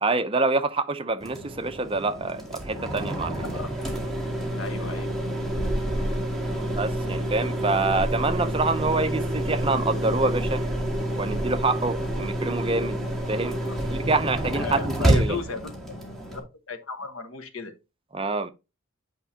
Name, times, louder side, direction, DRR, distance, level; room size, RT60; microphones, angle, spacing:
voice 1, 0.0-3.5 6.8-10.6 11.2-13.0 13.3-15.4 18.1-18.5, right 3 dB, 25° right, 0.6 m, -26 dB
sound 1, 1.2-16.4, right 1 dB, ahead, 2.1 m, -28 dB
voice 2, 4.6-5.1 13.4-13.8 14.5-17.7, left 4 dB, 70° left, 1.2 m, -36 dB
9.5 x 5.1 x 2.8 m
head